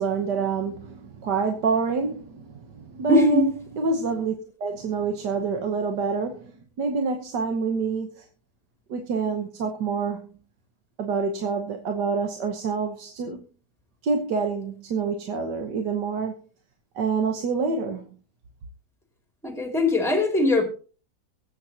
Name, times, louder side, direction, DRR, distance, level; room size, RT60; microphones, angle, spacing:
voice 1, 0.0-3.5 3.8-4.4 4.6-8.3 8.9-10.3 11.0-13.5 14.0-16.4 17.0-18.1, right 5 dB, 85° right, 1.8 m, -27 dB
voice 2, 3.1-3.5 19.4-20.6, left 2 dB, ahead, 2.4 m, -21 dB
22.5 x 7.9 x 2.9 m
omnidirectional pair, 1.8 m